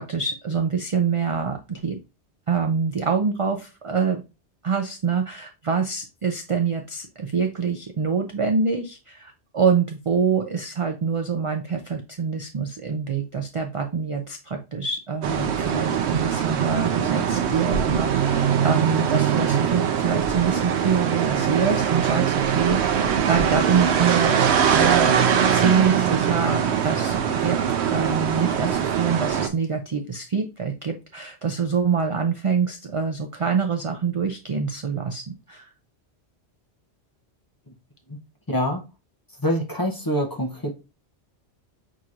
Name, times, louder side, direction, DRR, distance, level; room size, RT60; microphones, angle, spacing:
voice 1, 0.0-2.0 2.5-4.2 4.6-24.4 24.7-25.2 25.5-27.6 27.9-35.6, right 5 dB, 50° right, 0.4 m, -25 dB
sound 1, 15.2-29.5, right 8 dB, 75° right, 0.9 m, -22 dB
voice 2, 38.5-38.8 39.4-40.7, equal, 25° left, 0.6 m, -25 dB
6.1 x 2.9 x 2.5 m
omnidirectional pair, 1.1 m